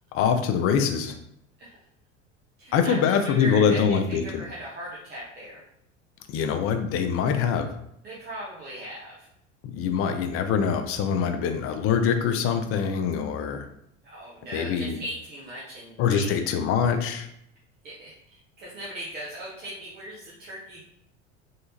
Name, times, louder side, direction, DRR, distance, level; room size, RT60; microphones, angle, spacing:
voice 1, 0.1-1.1 2.7-4.4 6.3-7.7 9.7-13.7 14.5-15.0 16.0-17.3, left 7 dB, 35° left, 6 dB, 0.5 m, -24 dB
voice 2, 2.6-5.6 8.0-9.3 14.0-16.3 17.8-20.9, equal, 25° right, -6 dB, 0.8 m, -39 dB
3.2 x 2.7 x 2.8 m, 0.74 s
figure-of-eight pair, 75°, 38 cm